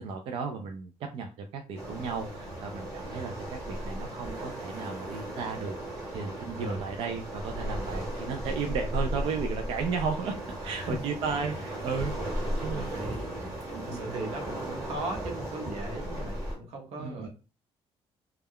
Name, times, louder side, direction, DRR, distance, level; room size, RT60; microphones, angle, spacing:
voice 1, 0.0-10.4 10.6-12.1 12.6-12.9 13.7-14.2 17.0-17.3, right 5 dB, 60° right, 4 dB, 0.4 m, -34 dB
Waves surf, 1.8-16.6, right 1 dB, 25° right, 1.1 m, -36 dB
voice 2, 10.6-11.0 12.7-13.3 13.8-17.3, right 1 dB, 90° right, 3 dB, 0.9 m, -38 dB
2.3 x 2.2 x 3.4 m, 0.33 s
cardioid pair, 155°, 11 cm